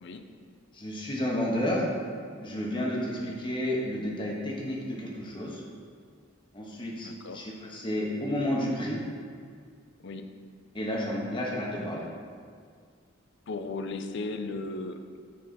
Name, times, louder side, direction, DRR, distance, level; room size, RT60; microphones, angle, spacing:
voice 1, 0.7-1.8 2.4-5.6 6.5-9.0 10.7-12.0, left 1 dB, 25° left, -3 dB, 1.3 m, -31 dB
voice 2, 7.0-7.5 10.0-10.3 13.5-15.2, left 3 dB, 60° left, 7 dB, 0.5 m, -36 dB
9.3 x 4.6 x 4.1 m, 2.1 s
head